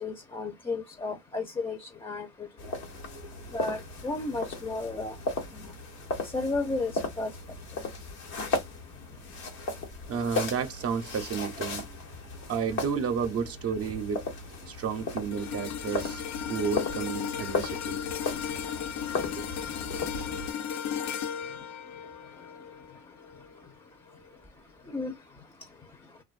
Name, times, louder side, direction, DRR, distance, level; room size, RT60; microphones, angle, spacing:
voice 1, 0.0-2.5 3.5-5.1 5.6-5.7 6.3-6.9 7.2-7.3 24.9-25.1, left 3 dB, 15° left, 0.5 m, -33 dB
sound 1, 2.6-20.5, left 3 dB, 90° left, 1.1 m, -36 dB
voice 2, 10.1-11.8 12.5-14.3 14.7-16.2 16.5-18.0 19.4-19.5, right 6 dB, 50° right, 0.5 m, -31 dB
sound 2, 15.3-23.7 24.1-24.3, left 8 dB, 65° left, 0.6 m, -36 dB
2.5 x 2.2 x 2.3 m
cardioid pair, 90°, 30 cm